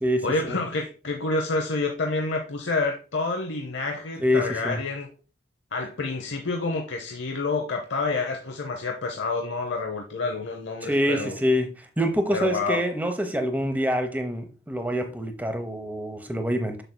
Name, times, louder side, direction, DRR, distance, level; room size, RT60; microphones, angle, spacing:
voice 1, 0.2-5.1 5.7-11.3 12.3-12.9, left 3 dB, 90° left, 0.8 m, -28 dB
voice 2, 4.2-4.8 10.8-11.7 12.0-16.8, equal, 10° right, 0.8 m, -25 dB
7.3 x 6.7 x 2.2 m
head